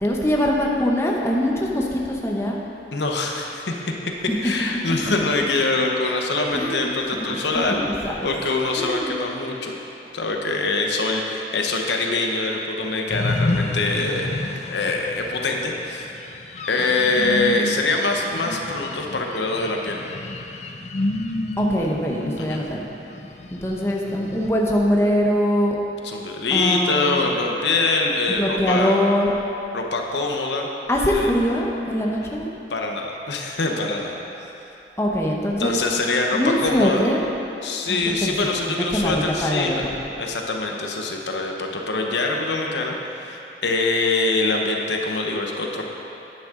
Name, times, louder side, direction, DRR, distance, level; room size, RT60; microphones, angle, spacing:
voice 1, 0.0-2.6 4.3-4.4 4.9-5.3 6.5-6.9 7.2-8.3 8.7-9.1 21.6-22.8 23.5-25.8 26.5-27.3 28.3-29.4 30.9-32.5 35.0-35.8 36.3-37.2 37.9-38.3 38.7-39.9, equal, 15° left, -2 dB, 0.8 m, -23 dB
voice 2, 2.9-3.7 4.4-7.8 8.2-9.8 10.1-14.3 14.7-16.1 16.7-20.0 22.4-22.6 26.0-29.0 29.7-30.7 31.1-31.3 32.7-34.2 35.6-37.1 37.6-39.8 40.2-45.8, left 3 dB, 70° left, 1 dB, 0.9 m, -24 dB
sound 1, 13.1-24.5, left 2 dB, 40° left, 0.5 m, -30 dB
11.0 x 9.1 x 3.8 m, 2.9 s
head